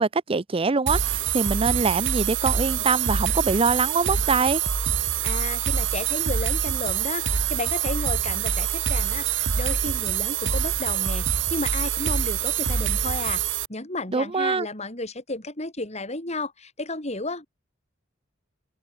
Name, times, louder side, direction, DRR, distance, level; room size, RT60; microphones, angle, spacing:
voice 1, 0.0-4.6 14.1-14.7, right 4 dB, 30° right, 0.6 m, -24 dB
sound 1, 0.9-13.7, right 8 dB, 75° right, 1.4 m, -25 dB
voice 2, 5.2-7.2 7.5-17.5, left 2 dB, 35° left, 5.8 m, -33 dB
open air
head